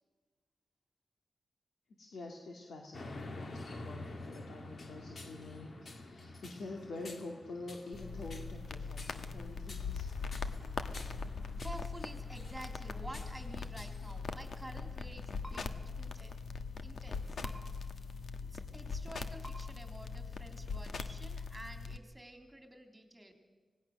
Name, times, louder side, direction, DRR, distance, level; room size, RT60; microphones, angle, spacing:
voice 1, 2.0-10.1, left 2 dB, 85° left, 1 dB, 2.3 m, -46 dB
sound 1, 2.9-15.0, left 2 dB, 50° left, 2.5 m, -50 dB
sound 2, 7.9-22.0, left 4 dB, 70° left, 1.3 m, -41 dB
voice 2, 11.6-15.7 16.0-16.4 16.8-17.4 18.5-23.3, right 1 dB, 10° right, 4 dB, 3.2 m, -50 dB
sound 3, 15.4-15.6 17.4-17.6 19.4-19.5 21.0-21.1, equal, 5° left, 4.7 m, -48 dB
25.5 x 19.0 x 6.6 m, 1.4 s
wide cardioid pair, 120°, 0 cm